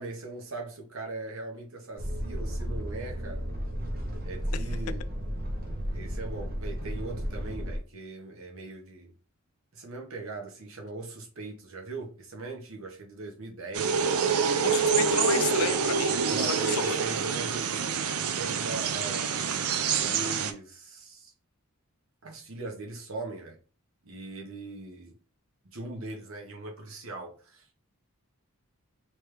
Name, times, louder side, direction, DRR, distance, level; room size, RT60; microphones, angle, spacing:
voice 1, 0.0-3.5 4.2-5.1 5.9-9.1 9.7-14.5 16.0-19.3 19.9-21.3 22.2-23.6 24.0-25.2 25.7-27.7, right 3 dB, 65° right, 1.1 m, -40 dB
sound 1, 2.0-7.8, equal, 40° right, 0.7 m, -33 dB
sound 2, 13.7-20.5, right 6 dB, 85° right, 0.5 m, -26 dB
voice 2, 14.6-16.9, left 8 dB, 75° left, 0.4 m, -33 dB
3.3 x 3.2 x 3.3 m
head